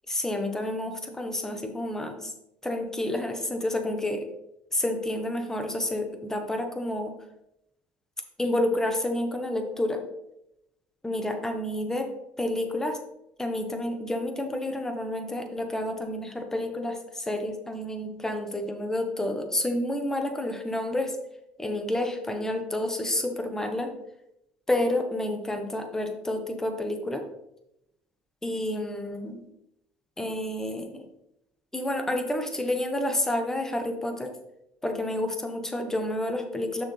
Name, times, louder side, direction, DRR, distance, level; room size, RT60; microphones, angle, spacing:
voice 1, 0.1-2.3 2.6-4.2 4.7-7.1 8.4-10.0 11.0-12.1 12.4-13.0 13.4-21.2 21.6-23.9 24.7-27.2 28.4-29.4 30.2-31.0 31.7-34.3 34.8-36.8, left 1 dB, 10° left, 5 dB, 1.2 m, -29 dB
6.3 x 6.3 x 3.4 m, 0.84 s
supercardioid pair, 85°, 4 cm